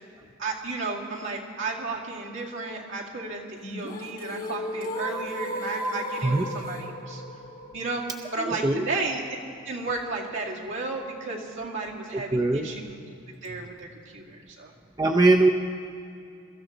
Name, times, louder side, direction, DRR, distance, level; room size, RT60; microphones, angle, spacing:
voice 1, 0.4-7.2 7.7-8.1 8.3-9.2 9.6-13.0 13.4-14.7, right 3 dB, 65° right, -3 dB, 2.2 m, -33 dB
sound 1, 3.6-9.6, equal, 45° left, 1.1 m, -35 dB
voice 2, 8.4-8.8 12.3-12.7 15.0-15.5, right 2 dB, 20° right, 3 dB, 0.5 m, -21 dB
22.0 x 13.5 x 3.9 m, 2.6 s
head